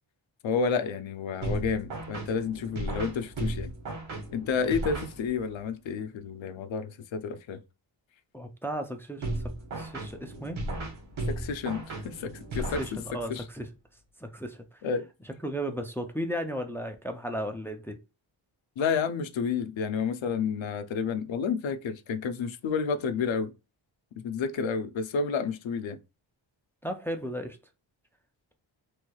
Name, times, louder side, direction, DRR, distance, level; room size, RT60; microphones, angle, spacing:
voice 1, 0.4-3.7 4.3-7.6 11.3-13.0 13.3-13.4 14.8-15.1 18.8-23.5 24.2-26.0, left 5 dB, 75° left, 0.6 m, -30 dB
sound 1, 1.4-5.6 9.2-13.4, right 2 dB, 80° right, 1.0 m, -35 dB
voice 2, 8.3-9.3 9.7-10.6 12.5-13.7 14.2-14.8 15.4-18.0 26.8-27.6, equal, 5° left, 0.3 m, -35 dB
3.2 x 3.1 x 2.3 m
wide cardioid pair, 130°, 47 cm